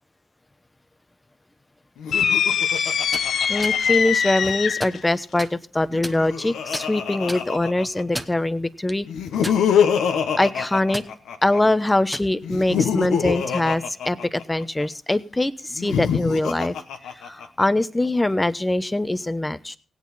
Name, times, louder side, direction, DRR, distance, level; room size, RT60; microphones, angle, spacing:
Laughter, 2.0-4.5 5.8-8.2 9.1-11.6 12.4-14.9 15.7-17.6, left 7 dB, 90° left, 1.0 m, -25 dB
sound 1, 2.1-5.0, left 7 dB, 75° left, 0.6 m, -22 dB
sound 2, 3.0-3.3 3.6-3.8 4.4-5.0 5.4-5.5 6.0-6.5 6.7-6.9 7.3-7.4 8.0-8.4 8.9-9.0 9.4-10.0 10.3-10.5 10.9-11.1 11.9-12.3, right 1 dB, 5° right, 1.0 m, -33 dB
voice 1, 3.5-9.1 10.4-11.0 11.4-16.7 17.2-19.8, left 2 dB, 20° left, 14 dB, 0.9 m, -23 dB
16.5 x 8.5 x 4.0 m, 0.38 s
cardioid pair, 55°, 0 cm